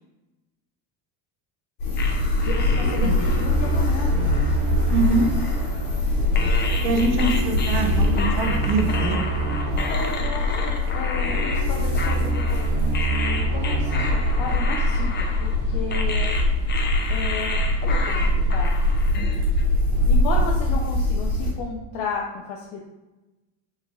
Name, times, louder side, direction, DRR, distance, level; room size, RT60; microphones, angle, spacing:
sound 1, 1.8-21.5, left 1 dB, 80° left, 1.4 m, -23 dB
sound 2, 2.0-6.0 6.4-19.6, left 4 dB, 25° left, 0.4 m, -33 dB
voice 1, 2.4-4.1 9.9-15.1 15.4-16.4 17.1-18.7 20.1-22.8, left 4 dB, 65° left, -1 dB, 0.7 m, -33 dB
sound 3, 2.7-15.8, right 4 dB, 55° right, 0.5 m, -30 dB
voice 2, 4.9-5.3 6.8-9.2, right 3 dB, 80° right, 3 dB, 0.8 m, -24 dB
4.0 x 3.8 x 2.4 m, 1.1 s
supercardioid pair, 100°, 48 cm